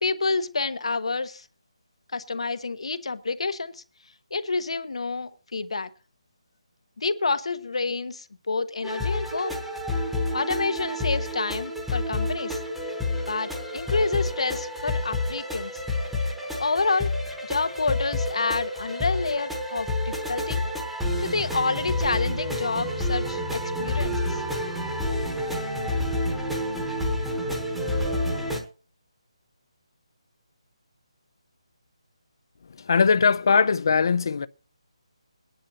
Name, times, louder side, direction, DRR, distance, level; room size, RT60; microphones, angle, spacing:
voice 1, 0.0-1.5 2.1-3.8 4.3-5.9 7.0-9.5 10.3-12.6 13.3-15.8 16.6-17.1 17.4-20.7 21.2-24.4, left 3 dB, 70° left, 1.0 m, -28 dB
sound 1, 8.8-28.6, left 1 dB, ahead, 1.1 m, -29 dB
voice 2, 32.8-34.5, left 5 dB, 40° left, 0.5 m, -20 dB
20.5 x 10.5 x 2.9 m
hypercardioid pair, 170°, 3 cm